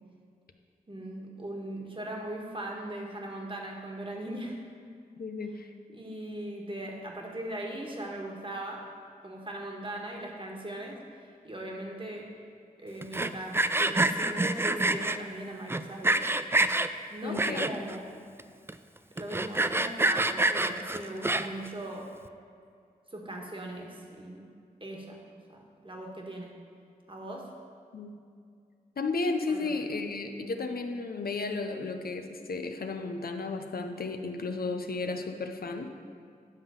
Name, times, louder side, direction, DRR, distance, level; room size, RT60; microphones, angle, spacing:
voice 1, 0.9-4.6 5.9-8.9 9.2-11.0 11.4-12.3 12.8-16.3 17.1-18.2 19.1-22.1 23.1-24.5 24.8-25.2 25.5-26.6 27.1-27.5 29.5-29.7, right 1 dB, 35° right, -1 dB, 1.5 m, -39 dB
voice 2, 5.2-5.7 17.2-17.7 27.9-28.2 29.0-35.9, left 3 dB, 75° left, 5 dB, 0.7 m, -33 dB
Sawing, 13.0-15.2 15.7-16.9 17.4-18.0 18.4-18.5 18.7-18.8 19.2-21.7, right 2 dB, 15° right, 0.3 m, -26 dB
9.8 x 3.8 x 7.1 m, 2.3 s
cardioid pair, 45°, 16 cm